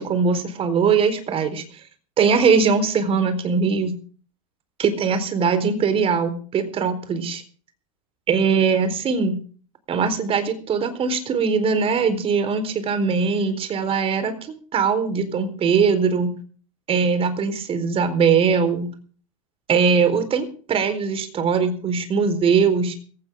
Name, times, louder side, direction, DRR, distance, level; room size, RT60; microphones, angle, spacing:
voice 1, 0.0-1.6 2.2-3.9 4.8-7.4 8.3-9.4 9.9-16.3 16.9-18.9 19.7-23.0, right 5 dB, 30° right, 10 dB, 4.1 m, -21 dB
17.5 x 16.5 x 3.7 m, 0.41 s
hypercardioid pair, 105°, 18 cm